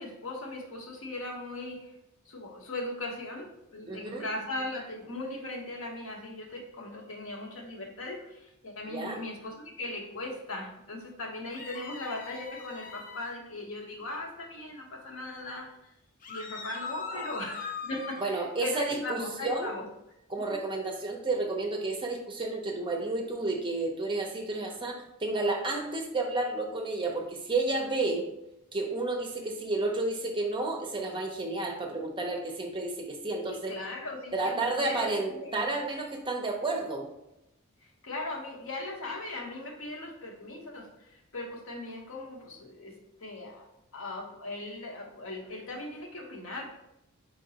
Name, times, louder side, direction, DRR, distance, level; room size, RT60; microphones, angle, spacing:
voice 1, 0.0-1.9 2.3-15.7 16.3-19.8 20.5-20.6 33.5-35.6 38.0-43.7 43.9-46.7, left 2 dB, 65° left, 1 dB, 0.9 m, -39 dB
voice 2, 3.9-4.3 8.8-9.2 17.1-17.3 18.2-19.7 20.3-28.3 28.7-33.7 34.3-37.1, right 2 dB, 25° right, 2 dB, 0.6 m, -31 dB
sound 1, 11.5-13.3 16.2-18.3, left 5 dB, 40° left, 0.4 m, -41 dB
4.4 x 3.8 x 2.8 m, 0.85 s
head